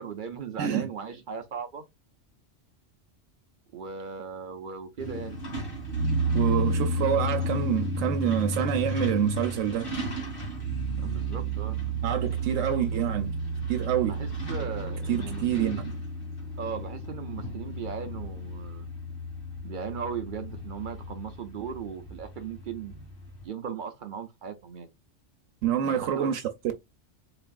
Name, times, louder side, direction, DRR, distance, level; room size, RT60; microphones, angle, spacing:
voice 1, 0.0-1.8 3.7-5.4 11.0-11.8 14.0-16.0 16.6-18.9 19.6-23.1 23.4-24.9 25.8-26.4, right 7 dB, 55° right, 0.6 m, -38 dB
voice 2, 0.6-0.9 6.3-9.9 11.0-11.2 12.0-13.3 13.7-14.2 15.1-15.8 25.6-26.4, right 10 dB, 90° right, 1.0 m, -27 dB
Truck, 5.0-23.4, right 1 dB, 45° left, 2.3 m, -32 dB
4.0 x 3.3 x 2.3 m
omnidirectional pair, 1.3 m